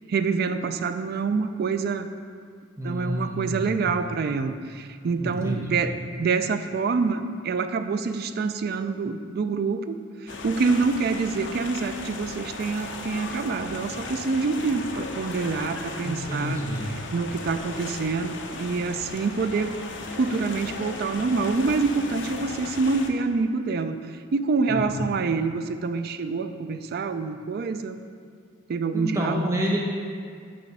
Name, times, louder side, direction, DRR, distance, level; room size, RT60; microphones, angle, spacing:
voice 1, 0.1-2.1 2.8-16.6 17.1-19.7 20.2-28.0 28.7-29.5, right 4 dB, 50° right, 10 dB, 0.3 m, -26 dB
voice 2, 2.8-3.8 5.2-5.6 16.0-16.9 24.7-24.8 28.9-29.8, equal, 15° right, -3 dB, 0.9 m, -28 dB
sound 1, 10.3-23.1, left 3 dB, 60° left, 0.7 m, -36 dB
9.4 x 3.3 x 6.0 m, 2.2 s
head